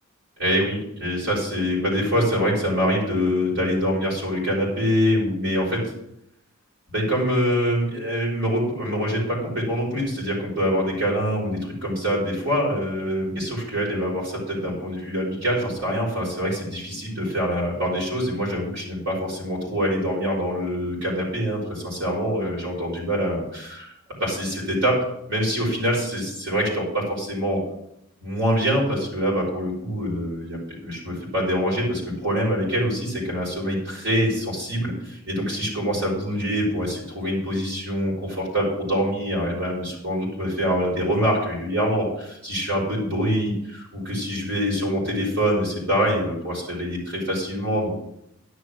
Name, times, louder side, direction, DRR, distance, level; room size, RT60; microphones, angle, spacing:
voice 1, 0.4-5.8 6.9-23.9 24.2-25.0 25.3-27.6 28.2-47.9, equal, 55° right, -4 dB, 5.3 m, -25 dB
11.0 x 6.3 x 6.4 m, 0.76 s
head